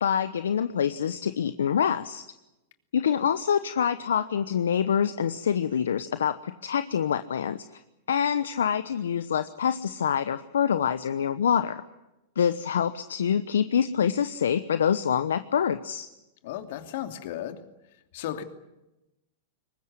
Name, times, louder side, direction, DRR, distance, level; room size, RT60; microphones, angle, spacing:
voice 1, 0.0-2.2 2.9-7.8 8.1-11.8 12.4-16.1, left 8 dB, 80° left, 12 dB, 1.0 m, -26 dB
voice 2, 16.4-17.6 17.9-18.4, left 11 dB, 65° left, 7 dB, 2.7 m, -35 dB
23.0 x 20.5 x 9.8 m, 0.96 s
hypercardioid pair, 105°, 0 cm